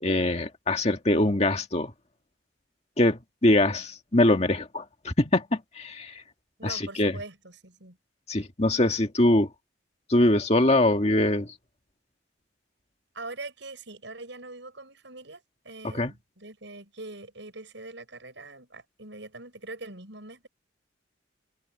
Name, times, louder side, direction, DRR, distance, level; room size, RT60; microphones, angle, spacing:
voice 1, 0.0-1.9 3.0-5.4 5.8-6.2 6.6-7.1 8.3-9.5 10.1-11.5 15.9-16.1, left 1 dB, 35° left, 1.9 m, -23 dB
voice 2, 6.6-8.0 13.1-20.5, right 2 dB, 70° right, 7.6 m, -43 dB
head